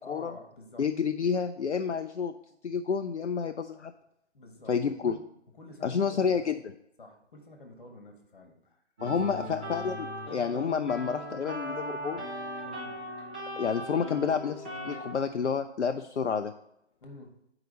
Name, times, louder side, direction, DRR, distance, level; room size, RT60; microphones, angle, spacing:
voice 1, 0.0-0.9 1.3-1.4 4.3-5.2 5.6-6.4 7.0-8.8 9.3-9.9 12.6-13.0 17.0-17.4, left 2 dB, 45° left, 4 dB, 1.5 m, -49 dB
voice 2, 0.8-2.3 2.6-3.9 4.7-5.2 5.8-6.6 9.0-12.2 13.6-16.5, left 6 dB, 75° left, 7 dB, 0.5 m, -29 dB
sound 1, 9.0-15.1, equal, 10° right, 0.6 m, -38 dB
8.2 x 4.9 x 4.1 m, 0.80 s
figure-of-eight pair, 140°, 35 cm